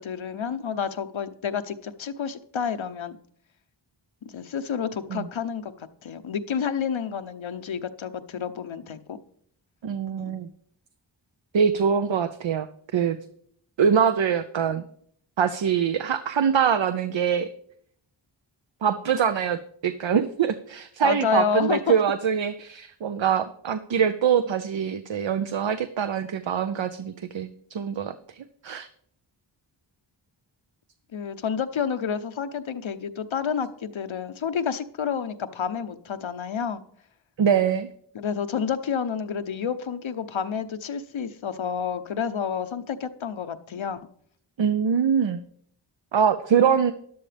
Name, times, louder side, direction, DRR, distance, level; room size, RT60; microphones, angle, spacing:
voice 1, 0.0-3.2 4.2-9.2 10.2-10.4 21.0-21.9 31.1-36.8 38.1-44.0, left 7 dB, 80° left, 10 dB, 0.8 m, -29 dB
voice 2, 9.8-10.5 11.5-12.7 12.9-13.2 13.8-14.8 15.4-17.5 18.8-28.4 28.6-28.9 37.4-37.9 44.6-45.4 46.1-46.9, right 7 dB, 70° right, 11 dB, 0.7 m, -24 dB
12.5 x 11.0 x 3.4 m, 0.64 s
cardioid pair, 40°, 47 cm